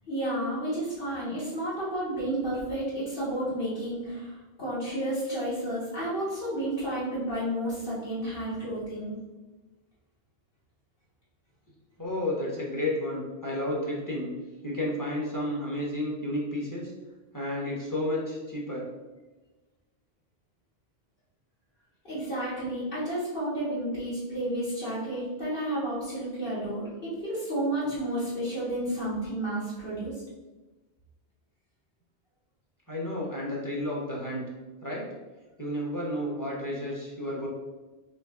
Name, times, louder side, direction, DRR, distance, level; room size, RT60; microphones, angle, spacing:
voice 1, 0.1-9.2 22.0-30.2, right 1 dB, 55° left, -10 dB, 1.8 m, -31 dB
voice 2, 12.0-14.3 14.6-16.9 17.3-18.9 32.9-34.5 34.8-35.1 35.6-37.5, left 1 dB, 20° left, -4 dB, 1.0 m, -31 dB
4.0 x 3.2 x 3.7 m, 1.2 s
omnidirectional pair, 1.1 m